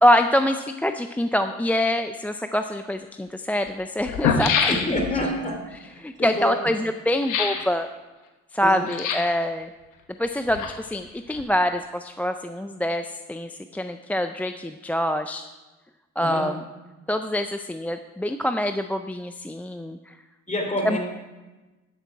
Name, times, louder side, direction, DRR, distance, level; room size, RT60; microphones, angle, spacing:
voice 1, 0.0-4.9 6.0-7.9 8.5-9.7 10.2-15.5 16.2-16.6 17.1-20.1 20.8-21.0, left 1 dB, 5° left, 7 dB, 0.3 m, -25 dB
sound 1, 2.7-2.8 3.7-3.8 4.0-5.2 7.2-7.7 8.9-9.4 10.2-11.0 11.3-11.4, left 6 dB, 90° left, 1.1 m, -25 dB
voice 2, 4.7-5.6 6.2-6.6 8.6-8.9 16.2-16.5 20.5-21.0, left 1 dB, 25° left, 2 dB, 2.7 m, -27 dB
12.0 x 6.9 x 4.6 m, 1.2 s
cardioid pair, 90°, 30 cm